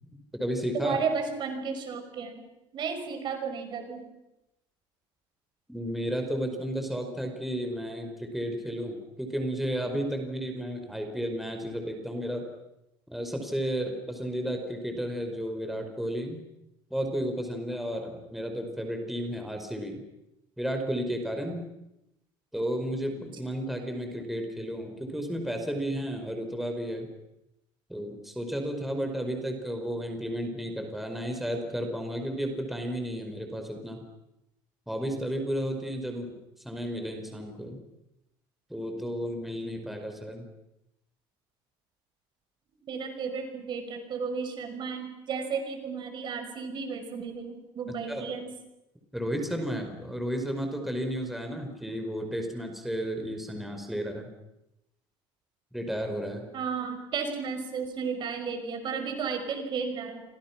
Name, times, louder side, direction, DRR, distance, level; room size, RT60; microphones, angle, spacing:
voice 1, 0.1-1.0 5.7-12.5 13.1-16.4 16.9-20.0 20.6-21.7 22.5-27.1 27.9-34.0 34.9-36.3 36.6-37.8 38.7-40.4 47.9-48.3 49.1-54.3 55.7-56.4, equal, ahead, 4 dB, 4.9 m, -33 dB
voice 2, 0.7-2.4 2.7-4.1 42.9-48.5 56.5-60.2, right 5 dB, 50° right, 6 dB, 5.7 m, -33 dB
29.0 x 25.0 x 6.1 m, 0.91 s
supercardioid pair, 110°, 10 cm